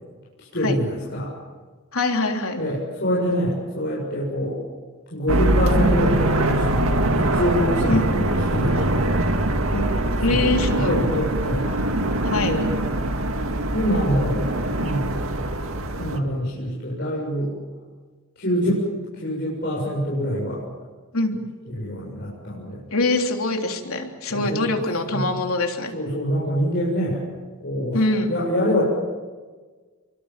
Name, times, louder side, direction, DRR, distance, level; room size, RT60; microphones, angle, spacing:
voice 1, 0.5-1.3 2.5-4.6 5.1-9.1 10.2-11.7 12.3-12.7 13.7-14.5 14.8-15.1 16.0-17.5 18.4-18.9 19.1-20.6 21.7-22.8 24.3-24.8 25.1-25.3 25.9-27.2 27.6-28.8, equal, 50° left, -5 dB, 7.5 m, -25 dB
voice 2, 1.9-2.6 7.9-8.1 9.7-9.9 10.2-10.9 12.2-12.5 21.1-21.3 22.9-25.9 27.9-28.3, left 2 dB, 75° left, 3 dB, 3.4 m, -23 dB
sound 1, 5.3-16.2, right 1 dB, 75° right, 2.1 m, -23 dB
29.5 x 23.5 x 7.6 m, 1.4 s
head